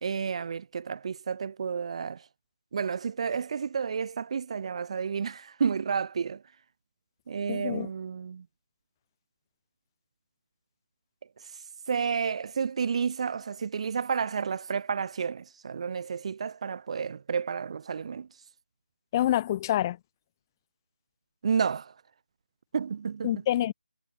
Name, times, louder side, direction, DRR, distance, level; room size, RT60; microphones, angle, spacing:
voice 1, 0.0-2.3 2.7-6.4 7.3-8.5 11.4-11.5 11.9-18.3 21.4-21.9 22.7-23.4, right 6 dB, 35° right, 1.7 m, -31 dB
voice 2, 7.5-7.9 19.1-20.0 23.2-23.7, left 13 dB, 20° left, 3.2 m, -26 dB
figure-of-eight pair, 160°, 5 cm